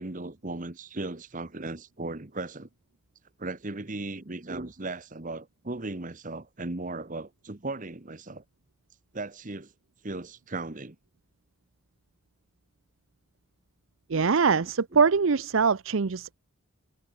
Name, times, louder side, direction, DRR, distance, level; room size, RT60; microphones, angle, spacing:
voice 1, 0.0-2.7 3.4-8.4 9.1-9.7 10.0-10.9, right 2 dB, 40° right, 1.2 m, -37 dB
voice 2, 14.1-16.4, right 5 dB, 70° right, 0.6 m, -23 dB
head